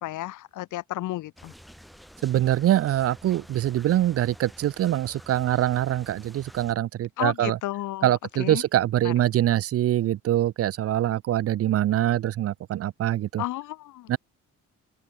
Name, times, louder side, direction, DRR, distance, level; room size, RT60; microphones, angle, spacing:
voice 1, 0.0-1.5 7.2-8.1 8.4-8.6 9.0-9.1 13.4-14.1, left 16 dB, 85° left, 1.2 m, -32 dB
sound 1, 1.4-6.7, equal, ahead, 0.9 m, -49 dB
voice 2, 2.2-7.6 8.0-13.4 14.1-14.2, right 13 dB, 50° right, 0.5 m, -24 dB
cardioid pair, 90°, 30 cm